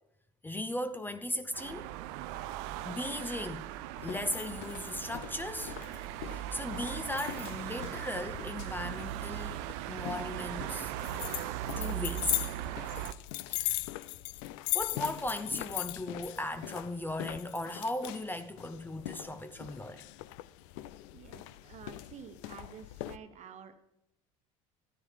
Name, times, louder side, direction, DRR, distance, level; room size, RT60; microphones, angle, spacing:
voice 1, 0.4-1.9 2.8-3.7 4.0-5.8 6.3-10.9 11.8-12.4 13.5-13.8 14.7-20.1, left 1 dB, 10° left, 0.7 m, -37 dB
sound 1, 1.5-13.1, right 13 dB, 65° right, 0.5 m, -39 dB
sound 2, 4.0-23.2, left 17 dB, 70° left, 0.4 m, -40 dB
voice 2, 21.1-23.8, right 8 dB, 45° right, 1.1 m, -50 dB
13.0 x 9.7 x 3.3 m
hypercardioid pair, 70°, 17 cm